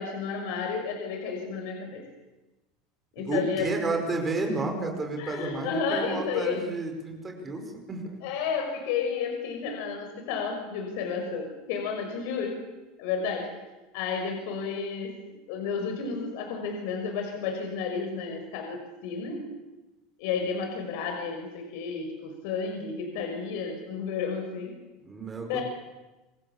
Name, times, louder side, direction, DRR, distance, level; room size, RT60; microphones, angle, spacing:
voice 1, 0.0-2.0 3.1-3.7 5.2-6.6 8.2-12.6 13.0-13.5 13.9-15.1 15.5-19.4 20.2-24.7 25.5-25.6, left 5 dB, 65° left, 3 dB, 6.1 m, -31 dB
voice 2, 3.3-8.2 25.0-25.6, right 2 dB, 15° right, 3 dB, 5.3 m, -31 dB
27.5 x 25.5 x 7.4 m, 1.1 s
supercardioid pair, 165°, 0 cm